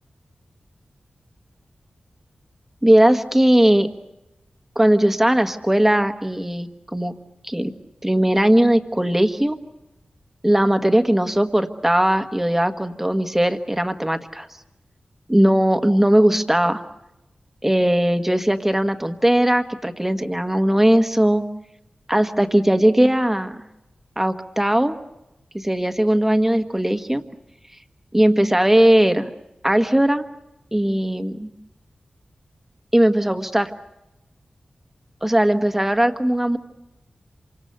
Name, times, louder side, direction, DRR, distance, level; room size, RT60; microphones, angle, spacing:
voice 1, 2.8-3.9 4.7-7.1 7.4-7.7 8.0-9.6 10.4-14.5 15.3-16.8 17.6-21.4 22.1-23.6 24.2-25.0 25.5-27.2 28.1-29.3 29.6-30.3 30.7-31.5 32.9-33.7 35.2-36.6, right 1 dB, 10° right, 7 dB, 1.5 m, -18 dB
27.5 x 25.5 x 6.8 m, 0.95 s
wide cardioid pair, 65°, 3 cm